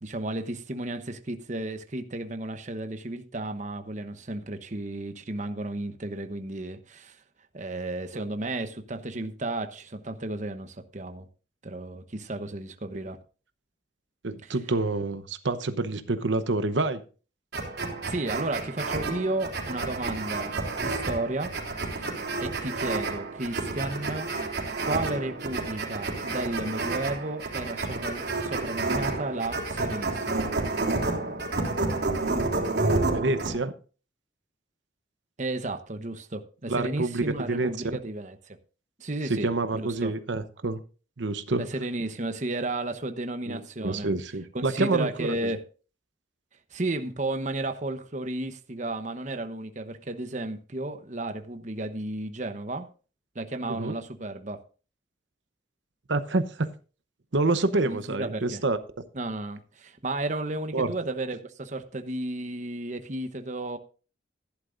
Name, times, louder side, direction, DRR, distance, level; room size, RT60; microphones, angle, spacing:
voice 1, 0.0-7.2 7.5-11.3 11.6-13.2 14.4-14.5 18.1-21.5 21.8-22.1 22.4-24.3 24.8-30.5 35.4-38.6 39.0-40.1 41.6-44.1 44.5-45.6 46.7-52.9 53.3-54.6 57.8-58.6 59.1-63.8, right 2 dB, 40° right, 1.0 m, -33 dB
voice 2, 14.2-17.0 33.1-33.7 36.7-37.7 39.3-40.8 41.2-41.6 43.5-45.5 53.7-53.9 56.1-56.7 57.3-58.8 60.7-60.9, right 2 dB, 75° right, 0.9 m, -27 dB
sound 1, 17.5-33.5, right 3 dB, 60° right, 3.7 m, -30 dB
15.0 x 11.5 x 2.6 m
head